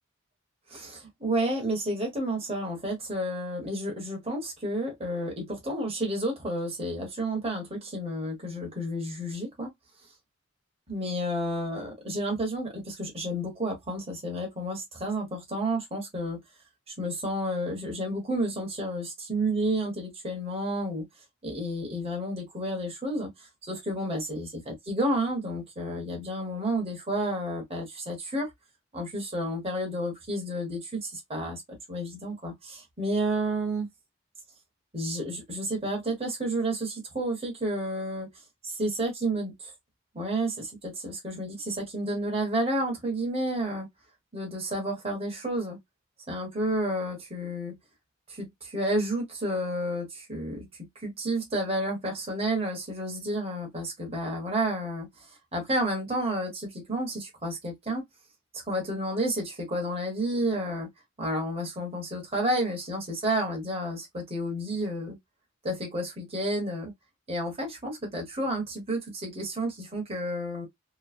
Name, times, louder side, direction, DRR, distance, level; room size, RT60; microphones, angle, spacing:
voice 1, 0.7-9.7 10.9-16.4 17.0-21.0 21.4-23.3 23.7-24.5 24.9-28.5 28.9-31.6 31.9-33.9 34.9-38.3 38.6-39.7 40.1-43.9 44.3-45.8 46.3-47.8 48.3-50.6 51.0-55.1 55.5-58.0 58.7-60.9 61.2-65.2 65.6-66.9 67.3-70.7, right 1 dB, 30° right, 1.2 m, -31 dB
3.1 x 2.1 x 2.4 m
head